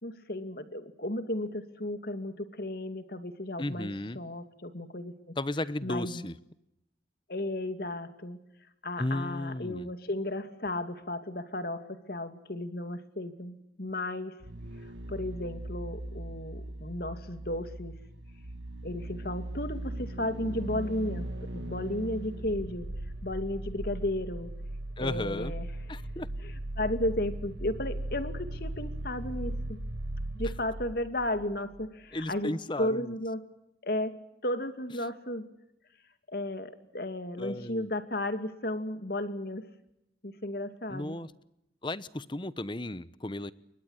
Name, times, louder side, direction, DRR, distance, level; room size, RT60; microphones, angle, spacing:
voice 1, 0.0-3.9 4.1-5.3 5.8-6.3 7.3-8.4 8.8-14.4 15.1-17.9 18.8-22.9 23.2-24.5 25.0-25.7 26.4-29.8 30.3-32.5 32.8-33.4 33.8-34.2 34.4-35.5 36.3-39.6 40.2-41.2, left 1 dB, 55° left, 9 dB, 2.6 m, -34 dB
voice 2, 3.6-4.2 5.4-6.3 9.0-9.9 25.0-25.5 25.9-26.3 32.1-33.1 37.4-37.9 40.9-41.3 41.8-43.5, left 1 dB, 25° left, 16 dB, 1.0 m, -34 dB
sound 1, 14.4-31.9 32.2-32.3, right 1 dB, 85° right, 1.6 m, -38 dB
29.0 x 24.0 x 8.2 m, 0.83 s
head